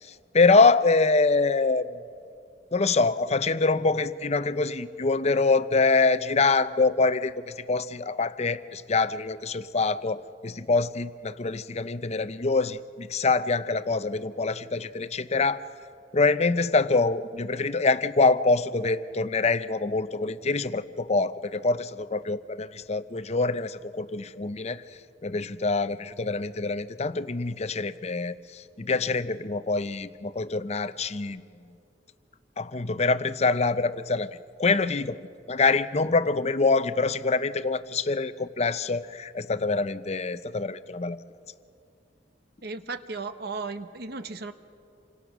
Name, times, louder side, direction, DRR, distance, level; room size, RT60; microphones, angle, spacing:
voice 1, 0.3-1.9 2.7-15.6 16.1-24.8 25.2-31.4 32.6-34.3 34.6-35.2 35.5-41.2, left 3 dB, 35° left, 13 dB, 0.6 m, -25 dB
voice 2, 42.6-44.5, right 4 dB, 60° right, 10 dB, 1.1 m, -35 dB
28.0 x 25.5 x 6.1 m, 2.6 s
head